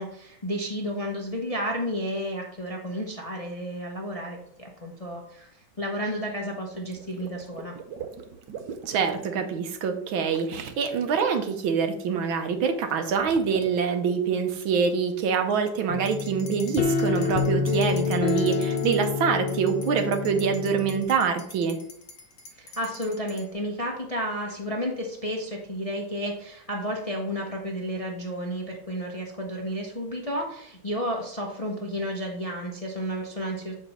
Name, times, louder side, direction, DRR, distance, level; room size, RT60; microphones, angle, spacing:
voice 1, 0.0-5.5 5.8-7.7 22.6-33.7, equal, 35° left, 0 dB, 0.6 m, -32 dB
Water / Liquid, 6.7-9.2 10.3-11.3 12.8-13.8, right 7 dB, 70° right, 1.3 m, -41 dB
voice 2, 8.9-21.8, right 6 dB, 85° right, 7 dB, 1.7 m, -25 dB
sound 1, 15.9-21.0, left 5 dB, 75° left, 1.4 m, -27 dB
sound 2, 16.1-19.1 19.5-23.5, left 2 dB, 60° left, 1.5 m, -46 dB
6.7 x 5.0 x 4.2 m, 0.72 s
omnidirectional pair, 2.1 m